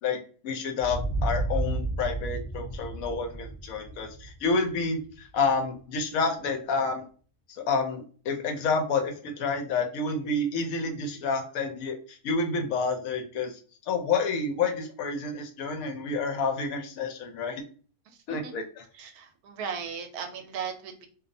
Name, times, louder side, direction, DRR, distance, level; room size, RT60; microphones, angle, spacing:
voice 1, 0.0-7.0 7.5-13.6 13.9-17.6 18.3-18.8, left 4 dB, 75° left, 5 dB, 1.0 m, -29 dB
sound 1, 0.8-5.4, right 2 dB, 35° left, 0.9 m, -32 dB
voice 2, 19.0-21.1, right 6 dB, 85° right, 5 dB, 1.1 m, -37 dB
2.7 x 2.0 x 2.5 m, 0.40 s
omnidirectional pair, 1.5 m